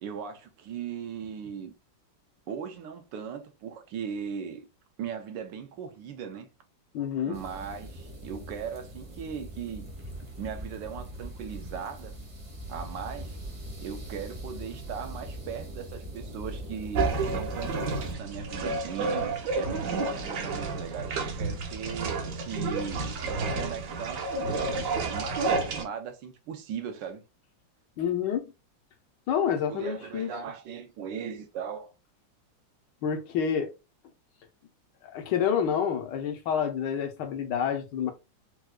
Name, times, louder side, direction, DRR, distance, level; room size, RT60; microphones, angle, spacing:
voice 1, 0.0-1.7 2.5-4.7 5.0-6.5 7.2-9.9 10.4-12.2 12.7-13.4 13.8-19.1 19.5-24.3 25.1-27.2 29.7-31.9, right 7 dB, 75° right, 1.3 m, -38 dB
voice 2, 6.9-7.4 28.0-28.5 29.3-30.3 33.0-33.7 35.0-38.1, left 8 dB, 70° left, 1.3 m, -28 dB
sound 1, 7.3-18.1, right 1 dB, 30° right, 0.6 m, -41 dB
sound 2, 16.9-25.8, right 3 dB, 60° right, 0.9 m, -30 dB
4.6 x 2.2 x 2.2 m
omnidirectional pair, 2.1 m